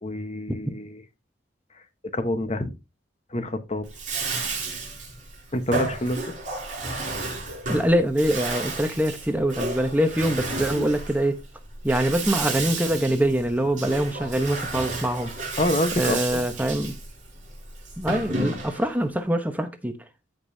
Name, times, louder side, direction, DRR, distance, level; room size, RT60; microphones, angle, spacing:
voice 1, 0.0-1.0 2.1-2.7 3.3-3.8 5.5-6.2 10.7-10.9 15.6-16.4, left 1 dB, 35° left, 1.0 m, -27 dB
Bathtub (filling or washing), 3.8-19.0, right 2 dB, 40° right, 5.3 m, -32 dB
voice 2, 7.7-11.3 11.8-15.3 16.0-16.9 18.0-19.9, right 1 dB, 10° right, 0.9 m, -24 dB
15.0 x 5.3 x 2.7 m
head